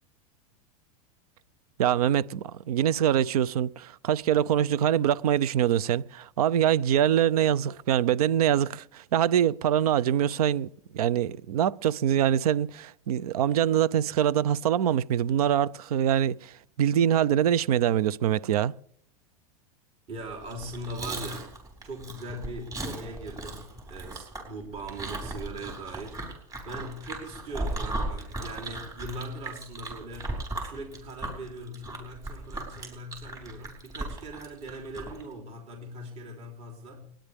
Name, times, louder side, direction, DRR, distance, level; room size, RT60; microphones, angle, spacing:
voice 1, 1.8-18.7, right 10 dB, 85° right, 0.6 m, -24 dB
voice 2, 20.1-21.5 21.8-26.2 26.6-37.0, right 1 dB, 35° right, 3.6 m, -40 dB
Chewing mastication, 20.4-35.2, right 2 dB, 20° right, 5.1 m, -37 dB
30.0 x 10.0 x 3.5 m
supercardioid pair, 125°, 19 cm